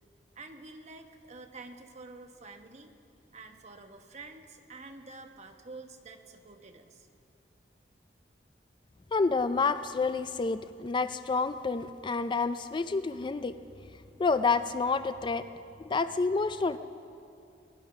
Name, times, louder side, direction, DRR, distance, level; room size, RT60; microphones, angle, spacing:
voice 1, 0.3-3.0 3.3-7.1, right 3 dB, 40° right, 5 dB, 1.1 m, -48 dB
voice 2, 9.1-13.5 14.2-15.5 15.8-16.8, left 4 dB, 25° left, 12 dB, 0.3 m, -28 dB
21.0 x 10.5 x 5.9 m, 2.5 s
head